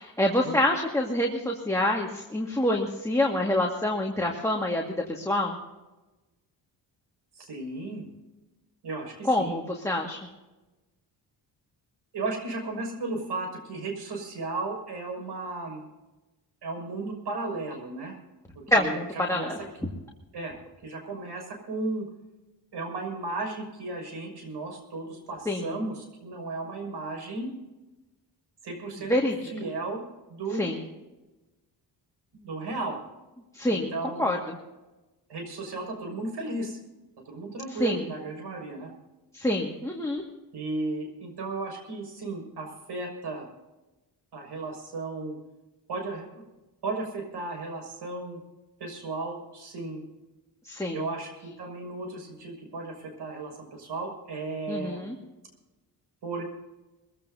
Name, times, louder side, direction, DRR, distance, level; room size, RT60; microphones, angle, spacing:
voice 1, 0.0-5.6 9.3-10.2 18.7-19.6 25.5-25.7 29.1-29.3 30.6-30.8 33.5-33.9 34.2-34.4 37.8-38.0 39.3-40.2 50.7-51.0 54.7-55.1, left 1 dB, 5° left, -1 dB, 1.9 m, -26 dB
voice 2, 7.3-8.1 8.8-9.6 12.1-15.8 16.6-18.2 18.5-19.5 20.3-20.6 20.8-22.1 22.7-27.5 28.6-29.1 29.5-30.0 30.3-30.7 32.3-33.0 33.7-34.4 35.3-36.8 37.3-38.9 40.5-43.5 44.3-45.4 45.9-46.4 46.8-48.4 48.8-50.0 50.9-55.1 56.2-56.4, right 3 dB, 75° right, 2 dB, 6.2 m, -35 dB
22.5 x 16.0 x 2.8 m, 1.1 s
cardioid pair, 100°, 40 cm